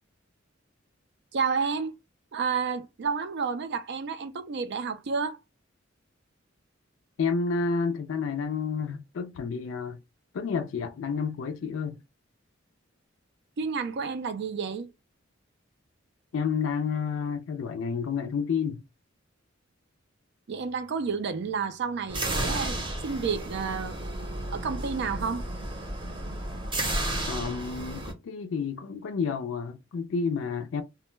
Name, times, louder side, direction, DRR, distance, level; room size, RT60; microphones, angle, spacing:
voice 1, 1.3-1.9 2.3-5.4 13.6-14.9 20.5-24.0 24.5-25.5, right 5 dB, 60° right, 0.4 m, -30 dB
voice 2, 7.2-10.0 10.3-12.0 16.3-18.8 27.3-30.8, left 5 dB, 75° left, 0.4 m, -30 dB
sound 1, 22.1-28.1, right 1 dB, 25° right, 0.7 m, -32 dB
2.2 x 2.1 x 3.0 m
head